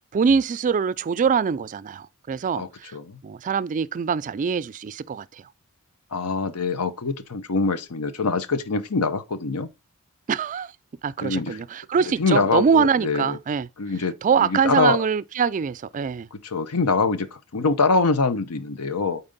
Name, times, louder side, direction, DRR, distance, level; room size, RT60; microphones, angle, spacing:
voice 1, 0.1-3.0 3.2-5.5 10.3-10.7 11.0-13.7 14.2-16.3, right 6 dB, 35° right, 0.3 m, -23 dB
voice 2, 2.5-3.2 6.1-9.7 11.2-11.6 12.2-13.4 13.8-15.0 16.3-19.2, left 4 dB, 90° left, 0.9 m, -24 dB
8.8 x 4.3 x 4.0 m
head